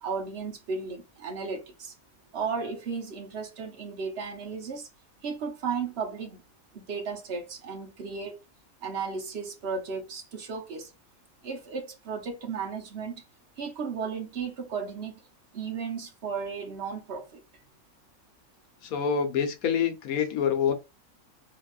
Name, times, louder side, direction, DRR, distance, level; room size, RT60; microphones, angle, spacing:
voice 1, 0.0-1.9 2.3-4.9 5.2-6.4 6.7-8.4 8.8-10.9 11.4-13.2 13.6-15.2 15.5-17.4, right 5 dB, 50° right, 1.1 m, -34 dB
voice 2, 18.8-20.7, left 7 dB, 75° left, 1.2 m, -26 dB
3.5 x 3.0 x 2.4 m
omnidirectional pair, 1.5 m